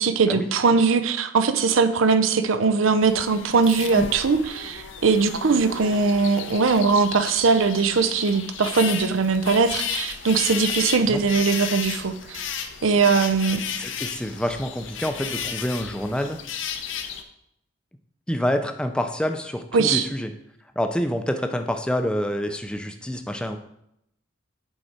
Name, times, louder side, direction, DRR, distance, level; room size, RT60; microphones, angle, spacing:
voice 1, 0.0-12.5 12.8-13.6 19.7-20.1, right 4 dB, 85° right, 9 dB, 0.6 m, -21 dB
sound 1, 3.0-17.2, left 7 dB, 70° left, 0.7 m, -33 dB
voice 2, 13.8-16.4 18.3-20.3 20.8-23.6, equal, 5° left, 6 dB, 0.4 m, -27 dB
7.9 x 4.7 x 4.3 m, 0.77 s
head